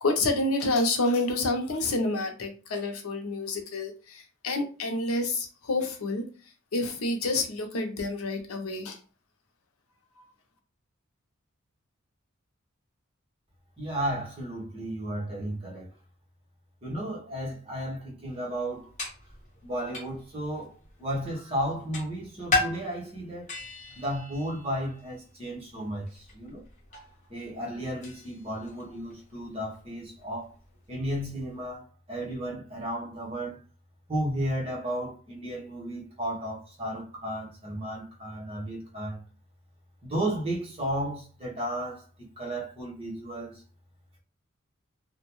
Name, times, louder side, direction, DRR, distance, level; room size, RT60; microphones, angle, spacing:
voice 1, 0.0-6.2 6.7-9.0, left 2 dB, 90° left, 0.6 m, -28 dB
voice 2, 13.8-15.9 16.8-18.9 19.6-20.7 21.0-23.6 24.0-26.6 27.3-30.5 30.9-33.6 34.1-39.2 40.0-42.0 42.4-43.6, right 1 dB, 30° right, 1.0 m, -33 dB
sound 1, 18.5-31.7, left 3 dB, 35° left, 0.9 m, -38 dB
2.6 x 2.2 x 3.0 m
head